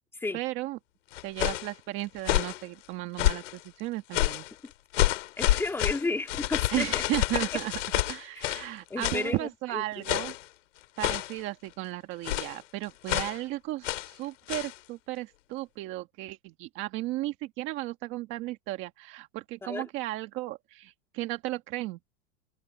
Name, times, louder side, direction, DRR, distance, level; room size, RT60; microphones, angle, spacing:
voice 1, 0.3-0.8 1.2-4.4 6.7-7.8 8.1-10.3 11.0-22.0, right 17 dB, 35° right, 1.5 m, -35 dB
sound 1, 1.1-1.7 2.2-2.6 3.2-3.6 4.1-4.5 4.9-8.7 9.0-9.3 10.0-10.4 11.0-11.4 12.2-12.6 13.1-13.4 13.8-14.1 14.5-14.7, left 16 dB, 85° left, 2.6 m, -28 dB
voice 2, 5.4-6.9 8.9-9.8 19.6-19.8, left 3 dB, 5° left, 2.4 m, -32 dB
supercardioid pair, 170°, 36 cm